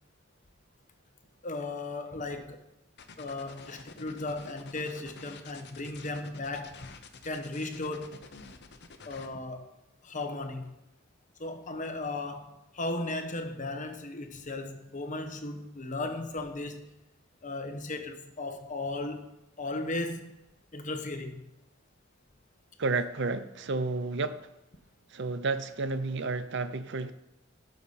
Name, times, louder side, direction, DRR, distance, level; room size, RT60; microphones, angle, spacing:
voice 1, 1.4-2.7 3.2-6.9 7.2-8.2 9.0-9.7 10.0-10.7 11.4-16.9 17.4-19.3 19.6-20.4 20.7-21.5, left 2 dB, 40° left, 1.2 m, -36 dB
sound 1, 3.0-9.3, left 4 dB, 55° left, 1.0 m, -49 dB
voice 2, 22.8-24.5 25.1-27.1, right 3 dB, 60° right, 0.7 m, -31 dB
17.0 x 6.8 x 4.2 m
head